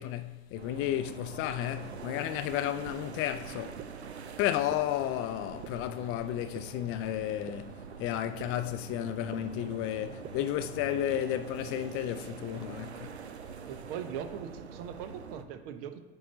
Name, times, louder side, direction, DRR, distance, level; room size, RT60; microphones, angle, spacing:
voice 1, 0.0-3.8 4.4-13.1, left 12 dB, 45° left, 0.5 m, -33 dB
sound 1, 0.6-15.4, right 6 dB, 85° right, 0.5 m, -44 dB
sound 2, 2.9-3.0 3.8-3.9 4.7-4.8 5.6-5.7 6.5-6.6 7.5-7.6 8.4-8.5 9.3-9.4 10.2-10.3 11.2-11.3, right 11 dB, 25° right, 0.4 m, -43 dB
voice 2, 13.7-16.0, right 8 dB, 55° right, 0.8 m, -40 dB
8.5 x 3.7 x 4.0 m
figure-of-eight pair, 70°, 32 cm